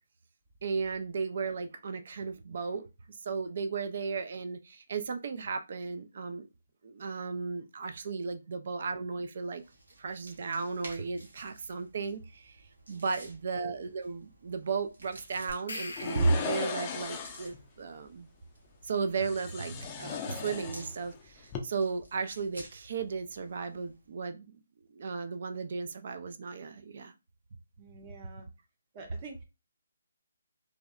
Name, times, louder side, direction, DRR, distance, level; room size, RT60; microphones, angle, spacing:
voice 1, 0.6-6.5 6.8-9.6 10.0-12.6 12.9-18.3 18.8-24.5 25.0-27.1, right 4 dB, 55° right, 0.3 m, -34 dB
sound 1, 9.4-24.1, right 1 dB, 90° right, 1.0 m, -54 dB
voice 2, 12.9-13.4 27.8-28.5 28.9-29.4, right 3 dB, 30° right, 0.7 m, -48 dB
sound 2, 15.5-17.1, left 2 dB, 85° left, 0.5 m, -43 dB
sound 3, 16.0-17.6 19.2-21.1 21.4-21.6, left 6 dB, 25° left, 0.4 m, -37 dB
2.7 x 2.0 x 2.3 m
hypercardioid pair, 155°, 0 cm